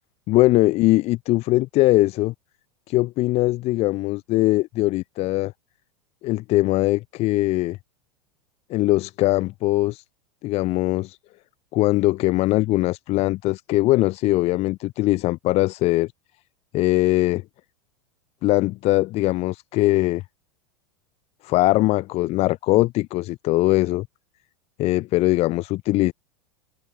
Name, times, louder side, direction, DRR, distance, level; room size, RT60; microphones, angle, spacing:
voice 1, 0.3-2.3 2.9-5.5 6.2-7.8 8.7-10.0 10.4-11.2 11.7-16.1 16.7-17.4 18.4-20.2 21.4-24.1 24.8-26.1, left 18 dB, 45° left, 2.2 m, -21 dB
figure-of-eight pair, 85°, 15 cm